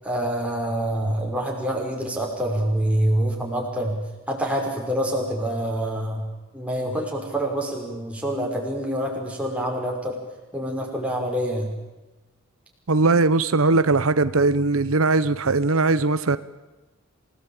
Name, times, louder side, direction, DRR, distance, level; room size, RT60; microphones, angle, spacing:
voice 1, 0.0-4.0 4.3-6.3 6.5-10.2 10.5-11.7, right 1 dB, 5° right, 0 dB, 5.5 m, -26 dB
voice 2, 12.9-16.4, right 3 dB, 80° right, 14 dB, 0.9 m, -20 dB
27.5 x 18.0 x 8.9 m, 1.1 s
head